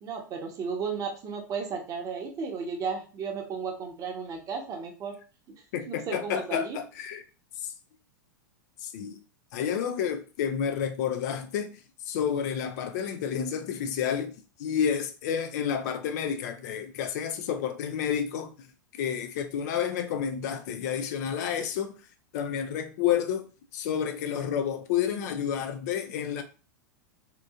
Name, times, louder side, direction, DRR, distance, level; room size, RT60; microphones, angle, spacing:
voice 1, 0.0-5.1 5.9-6.8, right 5 dB, 35° right, 0.8 m, -34 dB
voice 2, 5.7-7.2 7.6-7.7 8.8-9.2 9.5-14.3 14.6-18.5 19.0-21.9 22.3-23.5 23.7-26.4, left 8 dB, 55° left, 0.4 m, -30 dB
2.8 x 2.5 x 2.3 m
hypercardioid pair, 105°, 11 cm